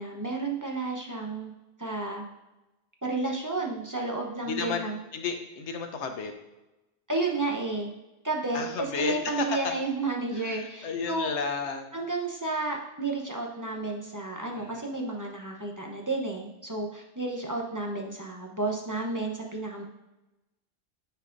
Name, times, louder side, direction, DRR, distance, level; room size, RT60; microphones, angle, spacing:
voice 1, 0.0-1.5 1.8-2.3 3.0-5.0 7.1-7.9 8.2-11.3 11.9-19.8, right 3 dB, 20° right, -1 dB, 0.7 m, -32 dB
voice 2, 4.4-4.8 5.1-6.3 8.5-9.7 10.3-12.0 14.5-14.9, left 5 dB, 80° left, 5 dB, 1.1 m, -32 dB
10.0 x 4.5 x 2.6 m, 1.0 s
omnidirectional pair, 1.2 m